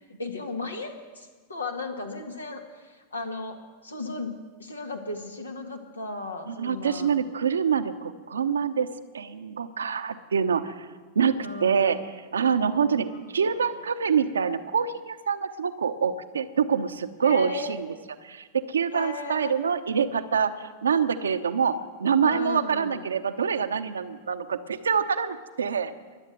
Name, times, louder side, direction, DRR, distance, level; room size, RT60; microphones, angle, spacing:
voice 1, 0.2-3.6 3.8-4.3 4.6-7.2 11.4-12.1 12.7-13.2 13.6-13.8 17.2-17.8 18.9-19.6 22.2-23.1, left 3 dB, 80° left, 4 dB, 1.8 m, -35 dB
voice 2, 6.5-8.9 9.1-10.9 11.1-12.0 12.3-13.1 13.3-17.9 18.2-25.9, right 6 dB, 70° right, 10 dB, 0.9 m, -25 dB
22.5 x 8.2 x 7.9 m, 1.4 s
figure-of-eight pair, 90°, 0 cm